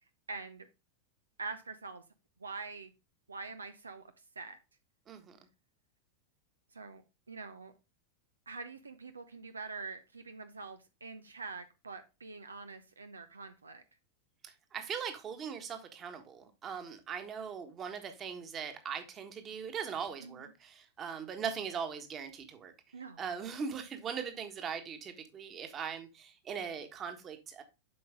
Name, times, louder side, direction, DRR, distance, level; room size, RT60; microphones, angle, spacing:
voice 1, 0.3-0.7 1.4-2.0 2.4-2.9 3.3-4.6 6.7-7.7 8.5-13.8 20.2-20.5 22.9-23.3, right 4 dB, 75° right, 0.6 m, -45 dB
voice 2, 5.1-5.4 14.4-22.7 23.2-27.6, right 7 dB, 25° right, 1.5 m, -40 dB
7.8 x 5.3 x 3.5 m
figure-of-eight pair, 90°, 0 cm